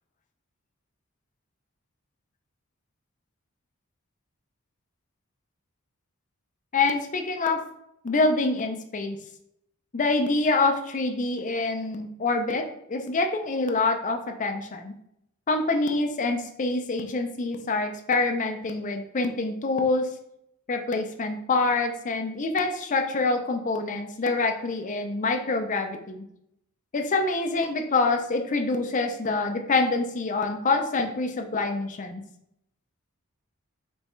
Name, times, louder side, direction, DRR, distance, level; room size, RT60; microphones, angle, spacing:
voice 1, 6.7-7.6 8.0-9.2 9.9-14.9 15.5-20.1 20.7-26.2 26.9-32.2, left 3 dB, 35° left, 5 dB, 0.5 m, -26 dB
5.2 x 3.2 x 3.1 m, 0.78 s
head